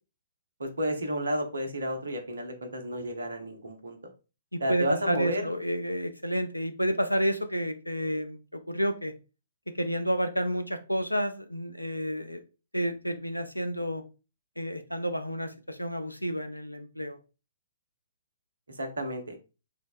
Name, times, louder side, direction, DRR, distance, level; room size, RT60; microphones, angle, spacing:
voice 1, 0.6-4.0 4.6-5.5 18.7-19.4, equal, 70° right, 5 dB, 0.6 m, -32 dB
voice 2, 4.5-9.1 9.7-12.4 12.7-14.0 14.6-17.2, equal, 90° left, 8 dB, 0.4 m, -30 dB
3.2 x 2.0 x 2.3 m, 0.31 s
figure-of-eight pair, 120°, 0 cm